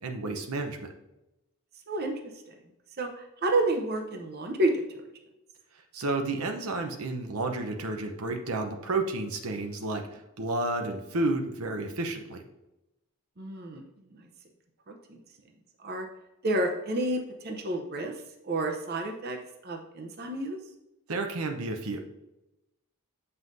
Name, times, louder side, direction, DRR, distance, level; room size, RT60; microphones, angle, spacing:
voice 1, 0.0-0.9 5.9-12.4 21.1-22.0, right 2 dB, 90° right, 4 dB, 0.8 m, -31 dB
voice 2, 3.4-4.7 13.4-13.8 14.1-14.3 14.9-15.2 15.8-16.1 16.4-18.1 18.4-19.4 19.6-20.6, right 2 dB, 45° right, 3 dB, 0.8 m, -29 dB
7.7 x 5.5 x 2.7 m, 0.95 s
head